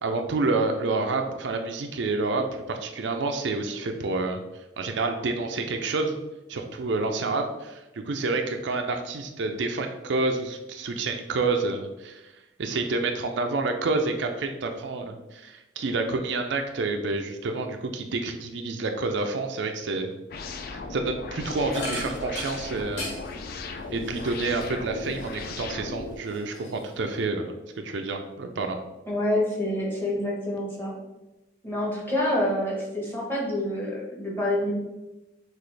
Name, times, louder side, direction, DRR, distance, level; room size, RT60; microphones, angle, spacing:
voice 1, 0.0-4.4 4.8-6.2 6.5-12.2 12.6-20.1 20.4-23.1 23.9-27.5 27.8-28.8, right 3 dB, 70° right, 5 dB, 0.4 m, -28 dB
sound 1, 20.3-26.2, left 3 dB, 50° left, 0.3 m, -37 dB
sound 2, 21.7-25.7 26.1-27.2, left 2 dB, 90° left, 1.5 m, -39 dB
voice 2, 29.1-30.9 31.6-34.7, left 1 dB, 10° left, -4 dB, 1.0 m, -27 dB
6.0 x 2.4 x 3.2 m, 1.0 s
head